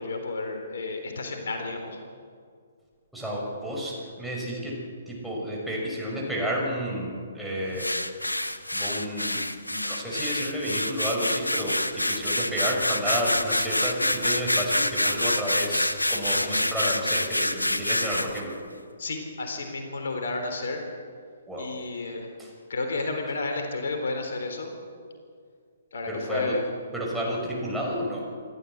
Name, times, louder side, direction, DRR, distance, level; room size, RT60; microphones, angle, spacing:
voice 1, 0.0-2.0 19.0-20.8 21.6-22.3 22.7-24.7 25.9-26.7, left 3 dB, 60° left, 4 dB, 3.8 m, -31 dB
voice 2, 3.1-4.8 5.1-7.9 8.7-18.6 21.5-21.8 22.4-22.5 26.1-26.6 26.9-28.3, equal, ahead, -4 dB, 5.8 m, -31 dB
sound 1, 7.8-18.4, left 1 dB, 90° left, 1.2 m, -27 dB
28.0 x 13.0 x 8.2 m, 2.1 s
figure-of-eight pair, 130°, 0 cm